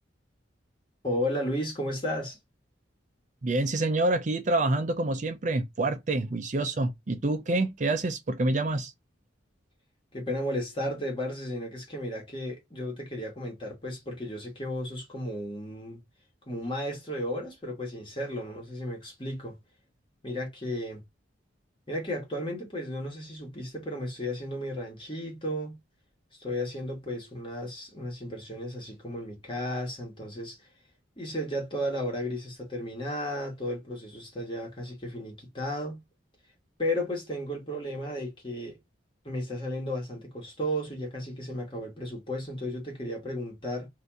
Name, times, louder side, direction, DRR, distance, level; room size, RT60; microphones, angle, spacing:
voice 1, 1.0-2.4 10.1-16.0 16.5-19.6 20.2-21.0 21.9-25.8 26.4-30.6 31.2-36.0 36.8-38.8 39.2-43.9, equal, 25° left, 1.2 m, -34 dB
voice 2, 3.4-8.9, right 2 dB, 40° right, 0.5 m, -27 dB
2.8 x 2.5 x 3.4 m
head